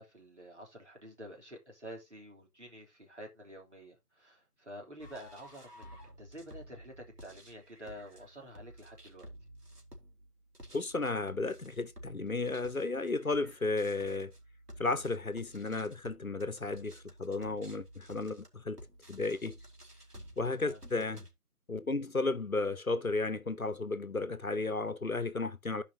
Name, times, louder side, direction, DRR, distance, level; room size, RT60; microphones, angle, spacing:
voice 1, 0.0-9.3 20.5-20.8, equal, 50° right, 3.4 m, -49 dB
sound 1, 5.0-21.3, equal, 80° right, 3.3 m, -53 dB
voice 2, 10.7-14.3 14.8-18.8 19.1-19.6 20.4-21.2 21.7-25.8, left 3 dB, 65° left, 1.1 m, -33 dB
13.5 x 5.2 x 2.8 m
figure-of-eight pair, 170°, 46 cm